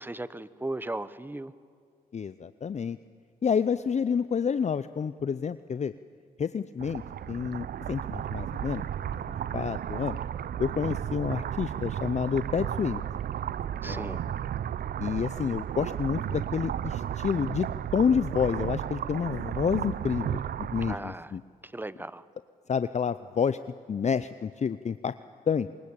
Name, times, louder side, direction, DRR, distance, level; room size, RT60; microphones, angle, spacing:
voice 1, 0.0-1.5 13.8-14.2 20.8-21.3 21.6-22.2, right 2 dB, 10° right, 16 dB, 1.0 m, -37 dB
voice 2, 2.1-3.0 3.4-5.9 6.4-7.0 7.3-9.2 9.5-10.2 10.6-13.0 13.8-14.3 15.0-21.4 22.7-23.6 23.9-25.1 25.5-25.7, left 6 dB, 45° left, 14 dB, 0.6 m, -29 dB
sound 1, 6.8-21.0, right 10 dB, 65° right, 0.6 m, -34 dB
24.5 x 20.5 x 8.8 m, 2.1 s
supercardioid pair, 50°, 17 cm